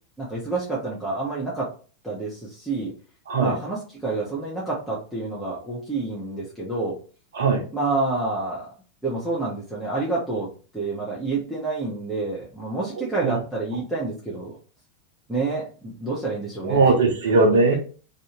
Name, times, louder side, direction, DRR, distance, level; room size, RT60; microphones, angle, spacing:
voice 1, 0.2-1.7 2.0-2.9 3.4-7.0 7.7-8.7 9.0-14.6 15.3-16.9, right 3 dB, ahead, -7 dB, 0.8 m, -28 dB
voice 2, 16.6-17.8, right 3 dB, 60° right, 3 dB, 0.6 m, -19 dB
2.6 x 2.4 x 2.8 m, 0.38 s
figure-of-eight pair, 90°, 0 cm